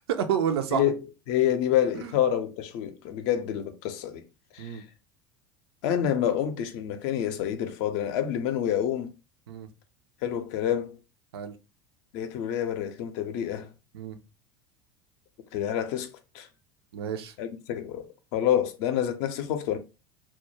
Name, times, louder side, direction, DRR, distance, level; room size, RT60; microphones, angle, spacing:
voice 1, 0.1-0.8 2.0-2.1 4.6-4.8 9.5-9.7 11.3-11.5 13.9-14.2 16.9-17.3, right 8 dB, 65° right, 0.4 m, -29 dB
voice 2, 1.3-4.2 4.5-4.8 5.8-9.1 10.2-11.0 12.1-13.7 15.5-16.5 17.4-19.8, left 10 dB, 55° left, 0.5 m, -28 dB
2.2 x 2.1 x 3.0 m
figure-of-eight pair, 75°, 14 cm